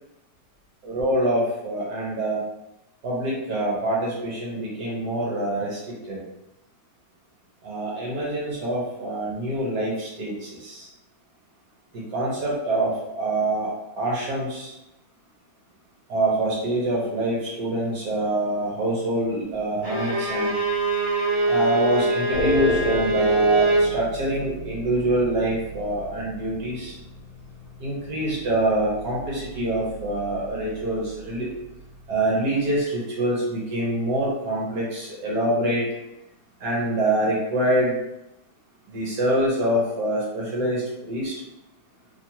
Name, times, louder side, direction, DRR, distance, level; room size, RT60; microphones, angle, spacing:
voice 1, 0.9-2.4 3.0-6.2 7.6-10.9 12.1-14.7 16.1-20.5 21.5-26.9 27.8-31.5 32.1-35.8 36.6-38.0 38.9-41.3, right 1 dB, 75° right, -5 dB, 1.4 m, -25 dB
Bowed string instrument, 19.8-23.9, right 2 dB, 55° right, 1.6 m, -23 dB
sound 1, 22.3-32.5, left 1 dB, 75° left, 1.1 m, -34 dB
3.2 x 2.4 x 2.8 m, 0.92 s
omnidirectional pair, 1.8 m